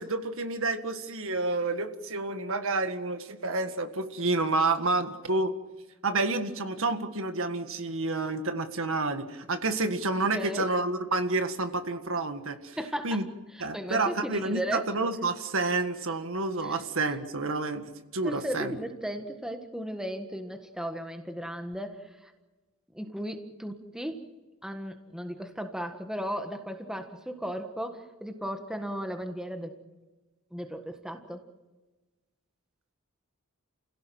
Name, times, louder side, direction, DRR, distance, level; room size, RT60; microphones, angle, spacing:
voice 1, 0.0-5.5 6.0-12.8 13.0-13.2 13.6-17.8 18.1-18.7, right 3 dB, 65° right, 8 dB, 1.8 m, -29 dB
voice 2, 10.3-10.7 12.8-13.2 13.7-14.8 16.6-16.8 18.2-22.0 22.9-24.2 24.6-29.8 30.5-31.4, equal, 5° right, 6 dB, 1.6 m, -35 dB
30.0 x 17.0 x 7.7 m, 1.2 s
head